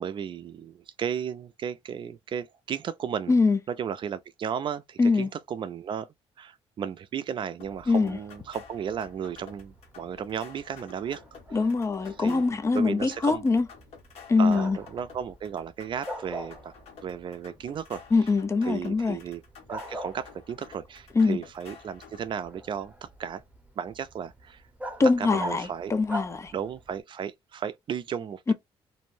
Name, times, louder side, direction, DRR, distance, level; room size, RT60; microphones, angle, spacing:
voice 1, 0.0-3.3 3.8-6.1 6.4-11.2 12.2-13.5 14.4-16.7 17.0-18.0 18.6-19.4 19.7-23.4 23.8-24.6 25.2-25.9 26.5-28.5, right 8 dB, 50° right, 0.4 m, -34 dB
voice 2, 3.3-3.6 5.0-5.3 7.9-8.2 11.5-13.6 14.3-14.8 18.1-19.2 21.1-21.4 25.0-26.5 28.5-28.6, left 4 dB, 25° left, 0.4 m, -23 dB
sound 1, 7.6-22.4, left 6 dB, 75° left, 1.3 m, -51 dB
Bark, 7.6-27.0, right 1 dB, 10° right, 0.8 m, -44 dB
2.5 x 2.1 x 3.2 m
cardioid pair, 95°, 11 cm